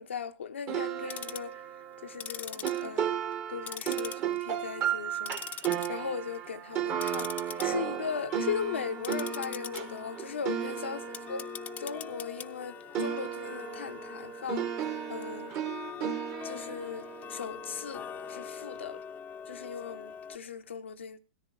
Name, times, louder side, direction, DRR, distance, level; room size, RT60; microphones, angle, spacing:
voice 1, 0.0-1.6 2.0-3.2 3.5-11.0 11.3-11.5 11.8-14.7 15.1-15.6 16.4-19.0 19.5-21.2, left 6 dB, 75° left, 0.7 m, -38 dB
sound 1, 0.7-12.6 12.9-18.2, right 9 dB, 35° right, 1.4 m, -35 dB
Tick-tock, 0.9-1.5 2.1-3.4 3.7-4.5 4.9-5.9 6.3-6.5 6.9-20.4, left 9 dB, 25° left, 0.6 m, -43 dB
17.0 x 14.0 x 3.0 m
hypercardioid pair, 110°, 6 cm